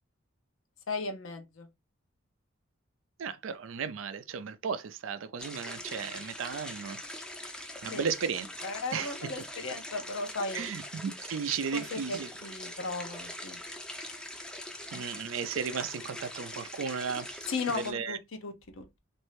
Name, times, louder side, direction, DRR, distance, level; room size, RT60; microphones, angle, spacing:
voice 1, 0.9-1.7 7.9-8.0 8.6-10.7 11.7-13.6 17.5-19.0, left 3 dB, 80° left, 0.7 m, -36 dB
voice 2, 3.2-7.0 7.8-8.5 8.9-9.1 10.5-12.3 14.9-18.2, right 6 dB, 75° right, 0.4 m, -35 dB
sound 1, 5.4-17.9, left 1 dB, 5° left, 0.5 m, -43 dB
3.1 x 2.6 x 3.2 m
head